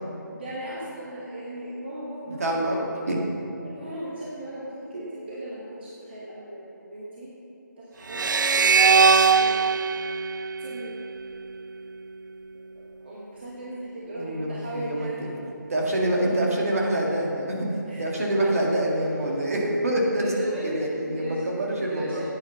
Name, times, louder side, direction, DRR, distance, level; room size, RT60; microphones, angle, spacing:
voice 1, 0.3-2.5 3.7-7.3 7.8-9.7 10.6-11.0 12.5-12.6 13.0-15.3 17.9-18.1 19.6-22.2, right 1 dB, 30° right, -7 dB, 1.4 m, -38 dB
voice 2, 2.4-2.8 3.1-3.2 4.9-5.0 14.1-15.3 15.7-17.7 18.0-22.2, right 1 dB, 50° right, -2 dB, 2.0 m, -26 dB
sound 1, 8.1-11.4, right 5 dB, 75° right, 0.4 m, -21 dB
10.0 x 9.0 x 5.6 m, 2.9 s
figure-of-eight pair, 175°, 10 cm